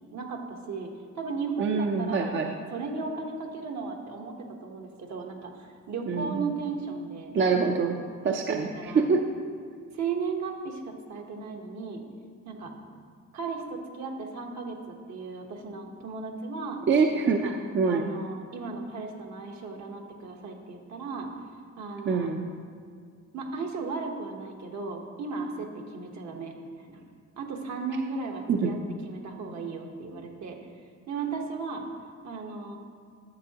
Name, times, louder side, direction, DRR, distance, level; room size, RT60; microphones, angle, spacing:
voice 1, 0.1-2.3 2.7-7.3 8.3-9.1 9.9-12.0 12.4-12.7 13.3-16.8 17.2-17.5 17.9-21.3 21.8-22.3 23.3-27.0 27.4-28.8 29.0-30.6 31.1-31.8 32.2-32.8, right 4 dB, 65° right, 2 dB, 1.2 m, -35 dB
voice 2, 1.6-2.6 6.1-6.5 7.3-8.7 8.9-9.2 16.9-18.1 22.0-22.4 28.5-28.7, right 5 dB, 40° right, 3 dB, 0.6 m, -25 dB
10.5 x 7.0 x 2.9 m, 2.2 s
cardioid pair, 90°, 30 cm